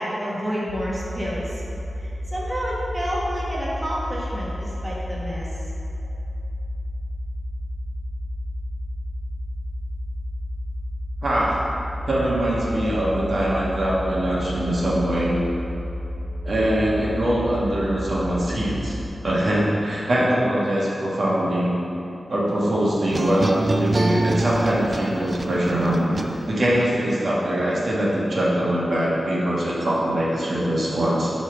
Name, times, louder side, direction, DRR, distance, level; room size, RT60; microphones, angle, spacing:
voice 1, 0.0-1.6 2.0-5.5, equal, 5° right, -7 dB, 1.3 m, -29 dB
sound 1, 0.7-19.1, left 1 dB, 85° left, 0.7 m, -31 dB
voice 2, 11.2-11.6 12.1-15.4 16.4-18.9 19.2-21.7 22.3-31.3, right 1 dB, 55° right, -6 dB, 1.4 m, -22 dB
sound 2, 23.1-26.8, right 2 dB, 30° right, 0.4 m, -25 dB
8.4 x 3.4 x 6.0 m, 2.9 s
wide cardioid pair, 125°, 0 cm